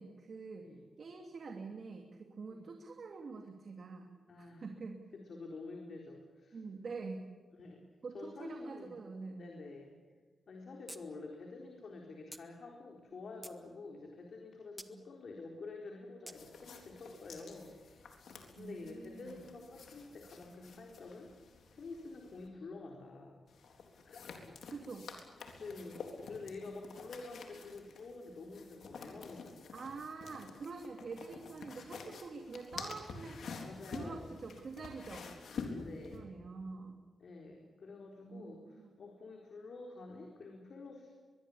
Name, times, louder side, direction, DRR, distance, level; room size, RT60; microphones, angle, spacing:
voice 1, 0.0-0.7 1.0-4.1 4.4-5.0 6.5-7.3 8.0-9.5 14.9-15.1 18.6-19.4 24.7-25.1 29.7-33.4 33.9-35.3 36.1-37.0 38.2-38.9, right 4 dB, 60° right, 4 dB, 2.5 m, -46 dB
voice 2, 4.3-4.6 5.1-6.6 7.6-7.8 8.1-8.9 9.4-9.9 10.5-18.2 18.6-21.3 21.7-23.4 24.0-24.4 25.6-26.0 26.3-29.6 33.6-34.3 35.7-36.3 37.2-41.1, left 3 dB, 65° left, 1 dB, 4.0 m, -48 dB
sound 1, 10.9-11.0 11.3-11.4 12.3-12.4 13.1-13.6 14.8-14.9 16.3-16.4, right 1 dB, 10° right, 1.7 m, -49 dB
sound 2, 16.3-22.5 23.5-36.2, left 4 dB, 80° left, 3.8 m, -49 dB
23.0 x 22.0 x 8.6 m, 1.4 s
cardioid pair, 80°, 0 cm